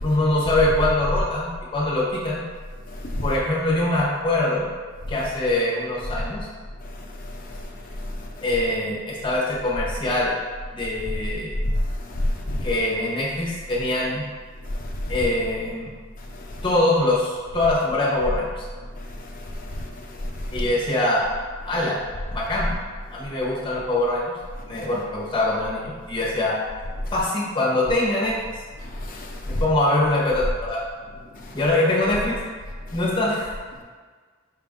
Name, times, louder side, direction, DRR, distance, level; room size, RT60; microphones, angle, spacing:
voice 1, 0.0-2.4 3.2-4.7 5.1-6.5 8.4-10.4 10.7-11.5 12.6-14.2 15.1-15.9 16.6-18.7 20.5-21.2 21.6-22.0 22.3-22.7 23.1-24.3 24.7-26.6 27.1-28.3 29.4-30.8 31.5-32.4 32.9-33.5, left 1 dB, 25° left, -6 dB, 0.9 m, -23 dB
voice 2, 12.2-12.6 19.8-19.9 20.2-20.6 29.0-29.6, left 1 dB, 40° left, 0 dB, 0.6 m, -28 dB
4.8 x 2.5 x 3.6 m, 1.5 s
head